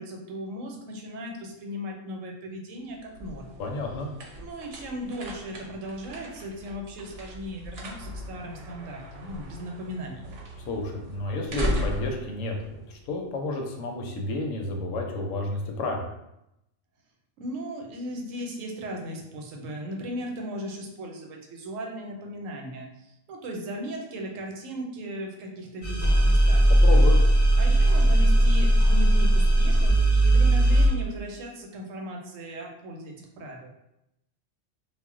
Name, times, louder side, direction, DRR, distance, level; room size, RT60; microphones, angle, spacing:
voice 1, 0.0-3.6 4.4-10.2 17.4-26.7 27.6-33.7, equal, 85° right, 1 dB, 1.0 m, -37 dB
sound 1, 2.8-13.5, equal, 60° right, 0.8 m, -37 dB
voice 2, 3.6-4.1 10.7-12.6 12.9-16.1 26.7-27.2, left 2 dB, 80° left, 2 dB, 0.9 m, -31 dB
sound 2, 25.8-30.9, right 1 dB, 20° left, 0.6 m, -18 dB
2.4 x 2.1 x 3.6 m, 0.85 s
omnidirectional pair, 1.3 m